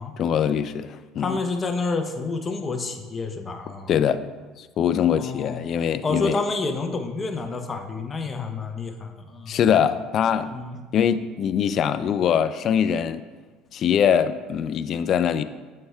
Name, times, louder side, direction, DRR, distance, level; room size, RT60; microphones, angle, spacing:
voice 1, 0.2-1.4 3.9-4.2 4.6-6.4 9.5-10.5 10.9-13.2 13.7-15.4, left 8 dB, 50° left, 12 dB, 0.3 m, -22 dB
voice 2, 1.2-3.9 5.2-5.6 6.0-9.6 10.4-10.8, left 3 dB, 30° left, 6 dB, 0.7 m, -29 dB
7.7 x 5.5 x 2.3 m, 1.4 s
hypercardioid pair, 75°, 0 cm